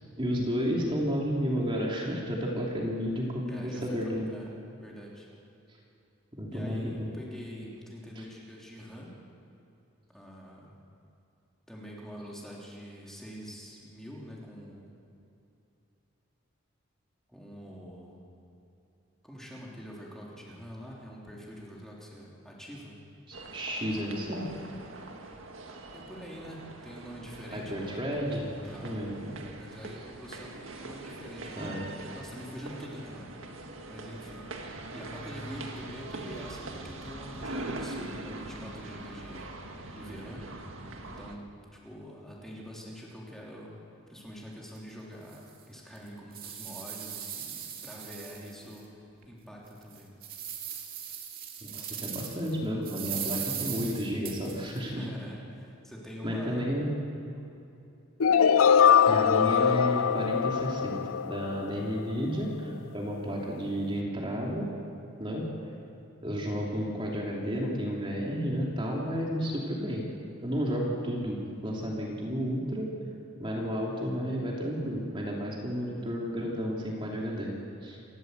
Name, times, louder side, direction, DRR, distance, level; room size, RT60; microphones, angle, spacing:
voice 1, 0.2-4.3 6.3-7.1 8.2-8.3 23.3-24.5 27.5-28.5 28.8-29.3 31.6-31.9 51.6-55.1 56.2-56.9 59.1-64.7 65.2-65.5 66.2-70.0 70.4-72.9 73.4-77.5 77.8-78.0, equal, 25° right, -3 dB, 3.1 m, -32 dB
voice 2, 3.5-4.5 4.8-5.3 6.5-9.1 10.1-10.8 11.7-15.0 17.3-18.2 19.2-23.0 25.9-28.0 28.6-29.0 29.6-33.3 33.9-34.5 34.9-39.5 39.9-40.5 41.0-43.7 44.1-48.9 49.2-50.1 54.9-56.7, equal, ahead, -4 dB, 3.4 m, -45 dB
sound 1, 23.3-41.4, right 2 dB, 75° right, 1.8 m, -42 dB
sound 2, 44.7-44.8 45.3-45.4 45.9-48.8 49.2-49.3 49.8-52.5 52.8-54.8, right 9 dB, 45° right, 2.8 m, -38 dB
sound 3, 58.2-62.1, left 7 dB, 90° left, 0.5 m, -22 dB
28.5 x 14.0 x 8.2 m, 2.7 s
head